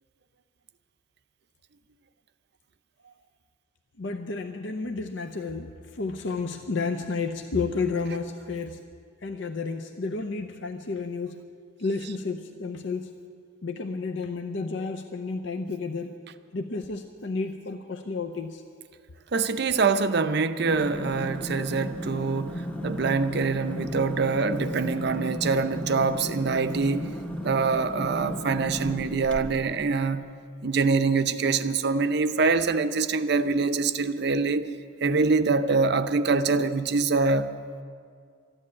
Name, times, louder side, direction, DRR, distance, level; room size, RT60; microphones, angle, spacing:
voice 1, 4.0-8.8 9.2-11.4 11.8-13.1 13.6-16.1 16.5-18.6, left 4 dB, 60° left, 0.6 m, -31 dB
voice 2, 19.3-27.2 27.4-30.3 30.6-34.7 35.0-37.6, right 4 dB, 55° right, 0.6 m, -24 dB
sound 1, 20.6-29.8, left 1 dB, 5° left, 0.8 m, -35 dB
13.5 x 11.0 x 8.6 m
head